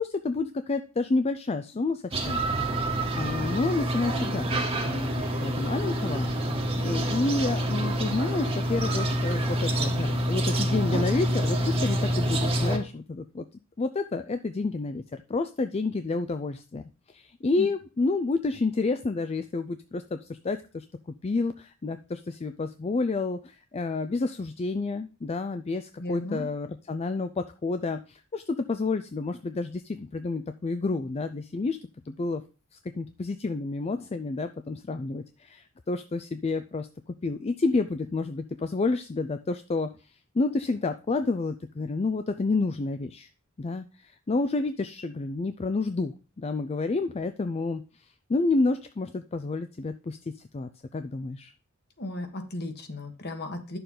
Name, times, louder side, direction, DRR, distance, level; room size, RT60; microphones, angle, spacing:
voice 1, 0.0-2.4 3.2-6.3 6.8-13.5 13.8-16.8 17.1-31.8 32.1-32.4 32.7-36.9 37.2-39.9 40.3-43.3 43.6-50.2 50.5-51.5, left 3 dB, 30° left, 9 dB, 0.4 m, -29 dB
sound 1, 2.1-12.8, right 1 dB, 25° right, 1.3 m, -27 dB
voice 2, 26.0-26.5 52.0-53.8, left 2 dB, 50° left, 6 dB, 1.5 m, -35 dB
10.0 x 6.8 x 3.9 m, 0.35 s
head